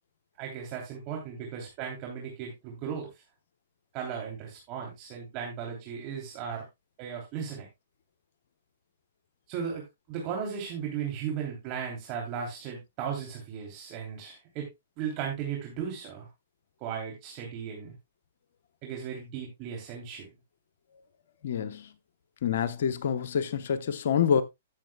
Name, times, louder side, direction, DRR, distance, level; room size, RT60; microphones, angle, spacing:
voice 1, 0.4-3.2 3.9-6.6 7.0-7.7 9.5-14.7 15.0-16.3 16.8-17.9 18.8-20.3, right 7 dB, 35° right, 3.1 m, -36 dB
voice 2, 21.4-21.9 22.4-24.4, left 8 dB, 65° left, 0.9 m, -27 dB
14.5 x 7.2 x 2.2 m
hypercardioid pair, 130°, 0 cm